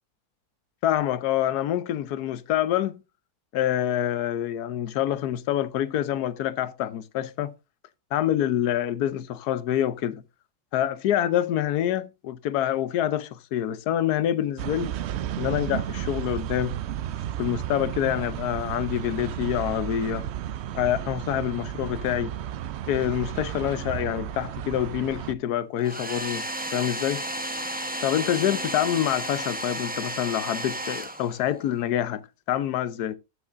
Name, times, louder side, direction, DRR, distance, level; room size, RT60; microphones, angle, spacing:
voice 1, 0.8-3.0 3.5-7.5 8.1-10.2 10.7-14.9 15.4-16.8 17.4-20.2 20.7-22.4 22.9-26.5 26.7-27.2 28.0-33.2, left 11 dB, 75° left, 1.3 m, -26 dB
sound 1, 14.6-25.3, right 11 dB, 70° right, 0.6 m, -33 dB
Domestic sounds home sounds, 25.8-31.7, right 1 dB, 10° right, 0.7 m, -33 dB
14.5 x 6.4 x 2.5 m
omnidirectional pair, 1.7 m